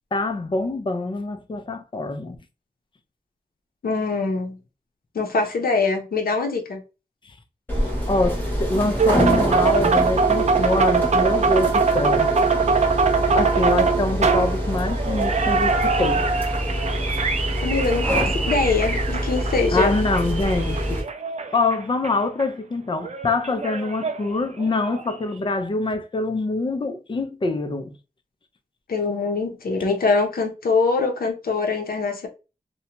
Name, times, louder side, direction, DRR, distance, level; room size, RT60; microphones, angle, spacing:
voice 1, 0.1-2.4 8.1-12.4 13.3-16.3 19.7-21.0 21.5-27.9, left 2 dB, 30° left, 0.4 m, -25 dB
voice 2, 3.8-4.6 5.1-6.8 17.6-19.9 28.9-32.3, left 4 dB, 70° left, 0.7 m, -23 dB
sound 1, 7.7-21.0, equal, 10° left, 0.9 m, -26 dB
sound 2, 9.0-22.1 22.4-22.5 23.0-25.0, right 5 dB, 45° right, 0.4 m, -23 dB
2.6 x 2.2 x 2.8 m
wide cardioid pair, 115°, 16 cm